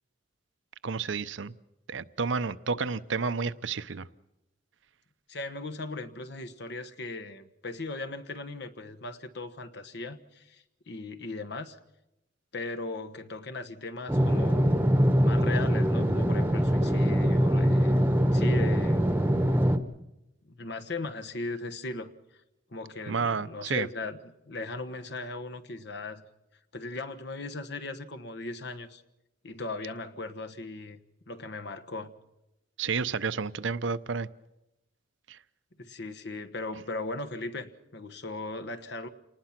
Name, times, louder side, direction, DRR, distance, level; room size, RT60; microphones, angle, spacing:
voice 1, 0.8-1.5 1.9-4.1 23.1-23.9 32.8-34.3 35.3-35.4, right 5 dB, 70° right, 0.7 m, -30 dB
voice 2, 5.3-11.8 12.5-14.8 15.1-18.0 18.3-19.1 20.4-22.1 22.7-26.3 26.7-29.0 29.4-31.0 31.3-32.2 35.8-39.1, left 2 dB, 60° left, 1.3 m, -38 dB
sound 1, 14.1-19.8, equal, 10° right, 1.1 m, -23 dB
28.5 x 19.5 x 5.9 m
head